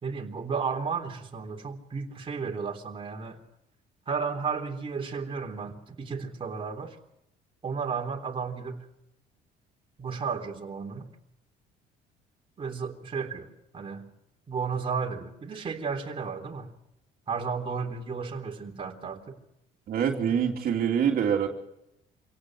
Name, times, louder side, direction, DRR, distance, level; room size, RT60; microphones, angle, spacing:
voice 1, 0.0-3.4 4.1-7.0 7.6-8.8 10.0-11.1 12.6-13.5 13.7-14.1 14.5-16.7 17.3-19.4, right 5 dB, 30° right, 1 dB, 3.6 m, -33 dB
voice 2, 19.9-21.5, right 8 dB, 60° right, 1 dB, 3.1 m, -25 dB
26.5 x 18.0 x 6.3 m, 0.83 s
cardioid pair, 110°, 17 cm